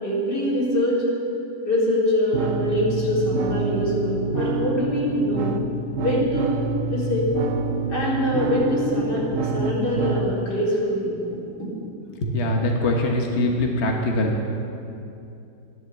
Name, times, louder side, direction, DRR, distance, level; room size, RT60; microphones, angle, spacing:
voice 1, 0.0-1.0 1.6-5.6 6.0-6.6 6.9-7.3 7.9-11.1, left 1 dB, 80° left, -7 dB, 4.6 m, -23 dB
sound 1, 2.3-10.3, right 3 dB, 60° right, 0.9 m, -27 dB
voice 2, 12.2-14.5, left 1 dB, 45° left, 0 dB, 1.4 m, -23 dB
14.0 x 11.0 x 7.2 m, 2.7 s
omnidirectional pair, 1.8 m